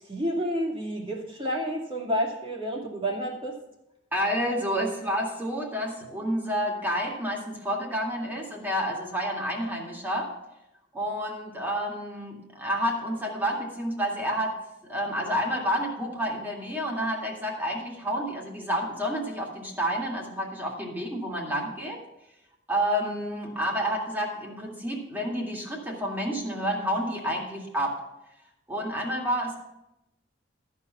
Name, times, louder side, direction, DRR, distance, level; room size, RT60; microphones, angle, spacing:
voice 1, 0.1-3.6, equal, 30° right, -2 dB, 2.3 m, -30 dB
voice 2, 4.1-10.3 10.9-14.5 14.8-22.0 22.7-28.0 28.7-29.5, equal, 10° right, -1 dB, 2.2 m, -29 dB
13.5 x 4.8 x 6.9 m, 0.89 s
head